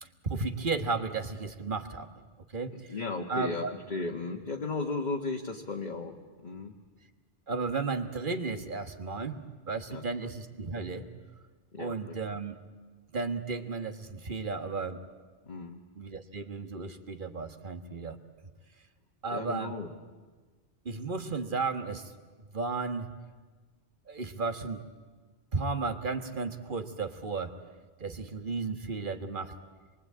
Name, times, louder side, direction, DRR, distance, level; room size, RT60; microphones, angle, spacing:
voice 1, 0.0-2.1 2.5-2.9 3.3-3.7 7.5-9.4 9.7-11.1 11.8-12.5 13.1-15.0 16.0-18.2 19.2-19.7 20.8-22.1 22.5-23.1 24.1-24.8 25.5-27.5 28.0-29.5, right 4 dB, 50° right, 8 dB, 1.6 m, -34 dB
voice 2, 2.9-6.1 6.4-6.7 9.9-10.0 11.7-12.2 15.5-15.8 19.3-19.9, left 3 dB, 45° left, 1 dB, 1.5 m, -35 dB
27.5 x 22.5 x 8.6 m, 1.4 s
omnidirectional pair, 1.1 m